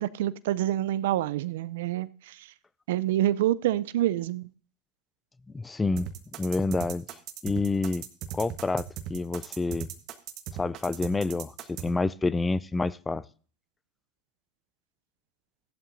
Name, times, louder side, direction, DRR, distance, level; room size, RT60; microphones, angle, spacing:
voice 1, 0.0-2.5 2.9-4.5, right 13 dB, 75° right, 0.4 m, -27 dB
voice 2, 5.5-6.1 6.4-7.1 7.4-8.0 8.3-9.9 10.5-13.2, left 3 dB, 15° left, 0.4 m, -28 dB
sound 1, 6.0-11.9, right 11 dB, 50° right, 1.2 m, -38 dB
14.5 x 11.5 x 2.6 m
hypercardioid pair, 90°, 0 cm